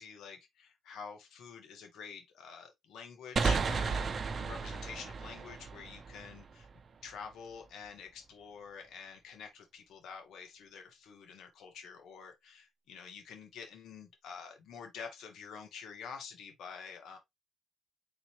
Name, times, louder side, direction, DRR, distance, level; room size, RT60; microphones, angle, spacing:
voice 1, 0.0-4.1 4.3-6.7 7.0-17.2, left 6 dB, 75° left, 1.4 m, -48 dB
sound 1, 3.4-6.8, right 5 dB, 40° right, 0.6 m, -34 dB
4.1 x 3.8 x 3.0 m
cardioid pair, 90°, 0 cm